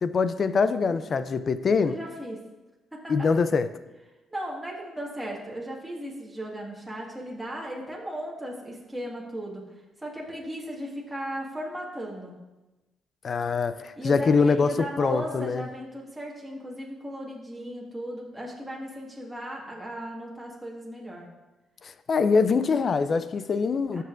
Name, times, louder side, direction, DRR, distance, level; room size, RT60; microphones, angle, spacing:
voice 1, 0.0-2.0 3.1-3.7 13.2-15.6 22.1-24.0, left 5 dB, 45° left, 0.4 m, -24 dB
voice 2, 1.8-2.4 2.9-3.3 4.3-9.7 10.0-12.4 14.0-21.3 23.9-24.0, equal, 5° right, 1.7 m, -36 dB
13.5 x 5.5 x 2.5 m
cardioid pair, 90°, 0 cm